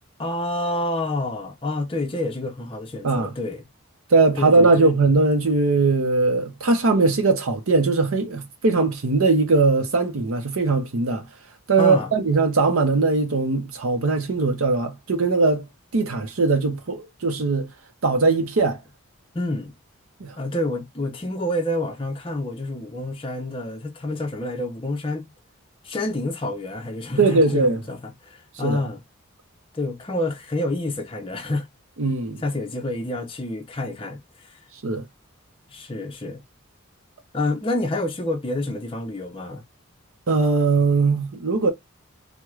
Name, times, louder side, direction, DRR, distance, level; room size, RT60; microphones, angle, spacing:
voice 1, 0.2-3.7 4.4-4.9 11.8-12.1 19.3-19.7 20.4-25.3 25.8-29.0 29.7-31.7 32.4-34.6 35.7-36.4 37.3-39.6, left 1 dB, 25° left, 0.6 m, -28 dB
voice 2, 4.1-11.3 11.7-15.7 15.9-17.7 18.0-18.8 20.2-20.4 27.2-27.8 28.6-28.9 32.0-32.4 34.8-35.0 40.3-41.7, right 3 dB, 70° right, 0.6 m, -20 dB
4.5 x 2.1 x 2.3 m
head